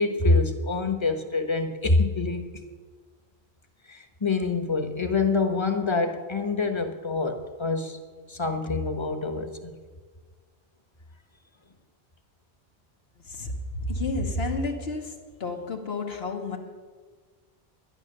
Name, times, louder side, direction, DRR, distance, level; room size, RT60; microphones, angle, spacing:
voice 1, 0.0-2.6 3.9-8.0 8.3-9.8, left 3 dB, 30° left, 8 dB, 1.1 m, -26 dB
voice 2, 13.2-15.1 15.4-16.6, left 2 dB, 80° left, 2 dB, 1.5 m, -30 dB
11.5 x 10.5 x 6.5 m, 1.5 s
omnidirectional pair, 1.1 m